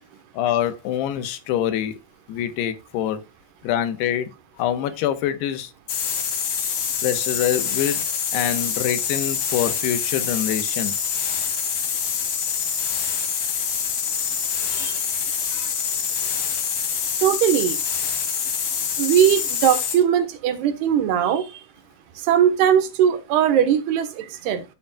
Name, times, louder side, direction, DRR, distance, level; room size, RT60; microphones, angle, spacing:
voice 1, 0.3-2.0 2.3-3.2 3.6-4.3 4.6-5.7 7.0-8.0 8.3-10.9, left 10 dB, 85° left, 3.1 m, -25 dB
Worst Sound in the World Contest A, 5.9-20.0, left 7 dB, 60° left, 3.6 m, -25 dB
voice 2, 17.2-17.8 19.0-21.6 22.2-24.6, right 9 dB, 80° right, 3.1 m, -20 dB
13.0 x 7.1 x 2.3 m
omnidirectional pair, 4.7 m